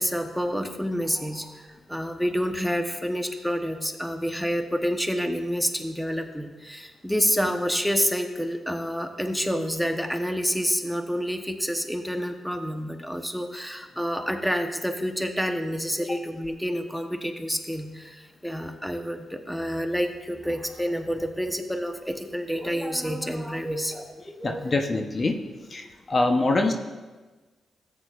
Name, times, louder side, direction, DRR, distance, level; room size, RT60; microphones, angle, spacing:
voice 1, 0.0-1.6 1.9-24.7, equal, ahead, 5 dB, 1.0 m, -28 dB
voice 2, 24.4-25.3 25.7-26.7, left 2 dB, 45° left, 4 dB, 0.9 m, -24 dB
14.0 x 8.3 x 2.5 m, 1.3 s
supercardioid pair, 45°, 0 cm